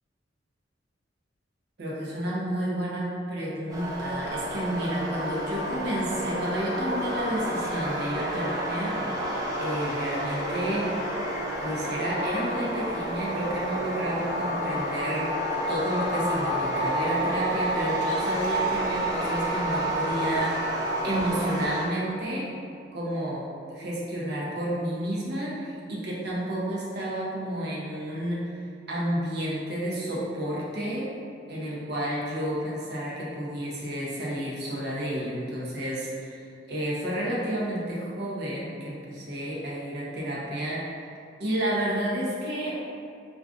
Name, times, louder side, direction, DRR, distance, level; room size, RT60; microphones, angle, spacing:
voice 1, 1.8-9.3 9.6-10.9 11.6-15.4 15.7-20.5 21.0-22.5 22.9-23.4 23.7-28.4 28.9-31.1 31.5-40.8 41.4-42.7, right 1 dB, 60° right, -6 dB, 0.7 m, -31 dB
sound 1, 3.7-21.8, right 1 dB, 20° right, 0.4 m, -29 dB
2.4 x 2.4 x 3.6 m, 2.4 s
head